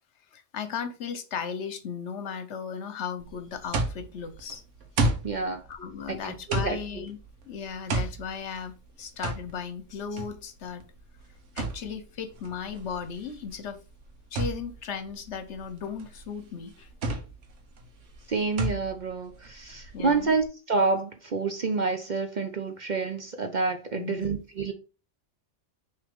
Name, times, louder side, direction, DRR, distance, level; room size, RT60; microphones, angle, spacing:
voice 1, 0.3-4.6 5.7-7.2 7.5-10.8 11.5-13.8 14.3-16.9 19.9-20.3 24.0-24.3, left 6 dB, 70° left, 1.1 m, -36 dB
sound 1, 3.2-20.5, right 2 dB, 75° right, 1.3 m, -34 dB
voice 2, 5.2-5.6 6.1-7.1 18.3-24.7, right 4 dB, 45° right, 0.7 m, -28 dB
6.2 x 3.3 x 5.1 m
omnidirectional pair, 1.3 m